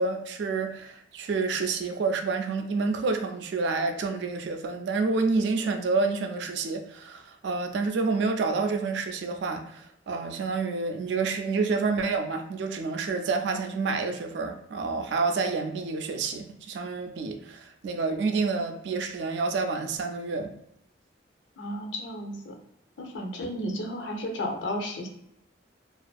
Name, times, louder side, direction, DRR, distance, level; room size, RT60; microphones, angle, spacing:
voice 1, 0.0-20.5, right 4 dB, 65° right, 6 dB, 0.3 m, -28 dB
voice 2, 21.6-22.6 23.0-25.1, left 1 dB, 75° left, 2 dB, 0.6 m, -33 dB
2.5 x 2.4 x 2.2 m, 0.76 s
head